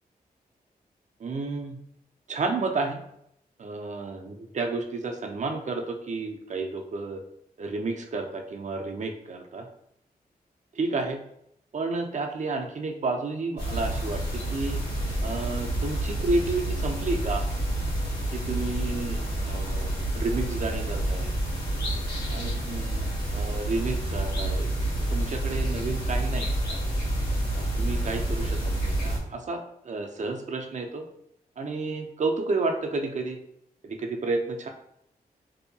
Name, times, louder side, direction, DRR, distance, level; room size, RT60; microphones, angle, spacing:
voice 1, 1.2-1.8 2.3-3.0 3.6-7.2 7.6-9.7 10.8-11.2 11.7-14.2 14.5-14.8 15.2-17.4 18.3-21.3 22.3-23.1 23.3-24.7 25.1-26.8 27.6-31.0 31.6-33.4 33.8-34.7, right 3 dB, 45° right, 4 dB, 0.4 m, -31 dB
sound 1, 13.6-29.2, right 1 dB, 90° left, 1.1 m, -28 dB
2.6 x 2.2 x 2.6 m, 0.74 s
cardioid pair, 60°, 16 cm